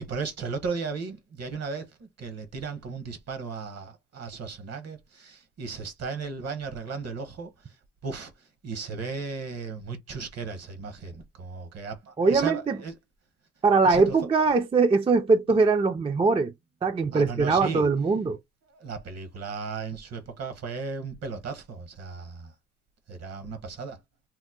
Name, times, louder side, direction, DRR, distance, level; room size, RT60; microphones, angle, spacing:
voice 1, 0.0-7.5 8.0-8.3 8.6-13.0 13.8-14.1 17.1-17.9 18.7-22.5 23.1-24.0, right 4 dB, 55° right, 1.0 m, -35 dB
voice 2, 12.2-12.8 13.6-16.5 16.8-18.4, right 4 dB, 20° right, 0.4 m, -22 dB
2.9 x 2.1 x 3.6 m
cardioid pair, 90°, 30 cm